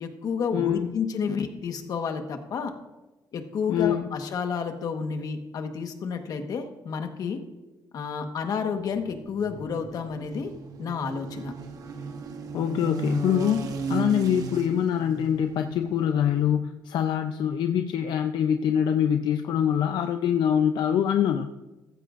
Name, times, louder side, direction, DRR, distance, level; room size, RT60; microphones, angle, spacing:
voice 1, 0.0-2.7 3.3-7.4 7.9-10.5 10.8-11.5, left 6 dB, 60° left, 6 dB, 1.3 m, -30 dB
voice 2, 0.5-0.9 3.7-4.1 12.5-21.5, left 9 dB, 80° left, 6 dB, 0.6 m, -24 dB
sound 1, 8.8-16.4, right 4 dB, 55° right, 1.1 m, -36 dB
14.5 x 14.5 x 2.5 m, 1.1 s
cardioid pair, 140°, 7 cm